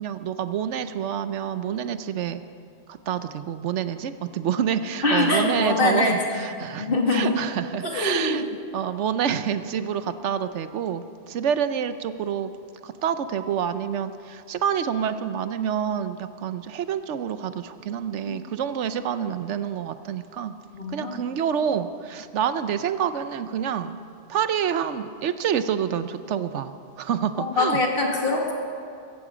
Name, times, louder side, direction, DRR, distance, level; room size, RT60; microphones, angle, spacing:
voice 1, 0.0-2.4 2.9-8.4 8.7-12.5 12.8-20.5 20.9-24.0 24.3-27.8, right 8 dB, 80° right, 11 dB, 1.0 m, -27 dB
voice 2, 5.0-6.4 6.8-7.4 7.8-8.4 18.3-18.4 20.7-21.1 27.4-28.5, left 2 dB, 50° left, 0 dB, 2.2 m, -23 dB
16.0 x 15.0 x 5.1 m, 2.5 s
omnidirectional pair, 1.2 m